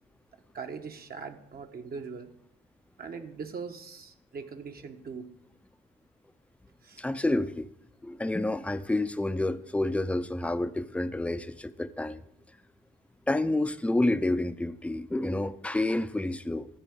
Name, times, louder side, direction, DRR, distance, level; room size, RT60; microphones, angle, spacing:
voice 1, 0.5-2.3 3.0-5.3 6.8-7.0, right 5 dB, 50° right, 5 dB, 1.3 m, -41 dB
voice 2, 7.0-7.7 8.0-12.2 13.3-16.7, left 2 dB, 5° left, 12 dB, 0.6 m, -29 dB
13.0 x 4.8 x 8.6 m, 0.79 s
cardioid pair, 90°, 20 cm